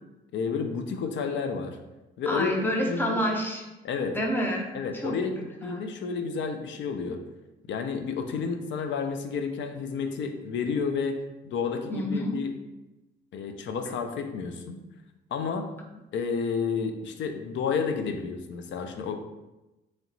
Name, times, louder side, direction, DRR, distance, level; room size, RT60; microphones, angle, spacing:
voice 1, 0.3-1.8 2.2-2.5 2.9-3.2 3.8-4.2 4.7-7.2 7.7-12.5 13.3-14.8 15.3-15.7 16.1-19.2, left 5 dB, 70° left, 6 dB, 0.5 m, -31 dB
voice 2, 2.3-3.6 4.1-5.2 5.6-5.8 11.9-12.4, equal, 10° left, 0 dB, 0.8 m, -28 dB
3.2 x 2.9 x 3.9 m, 1.0 s
cardioid pair, 90°, 20 cm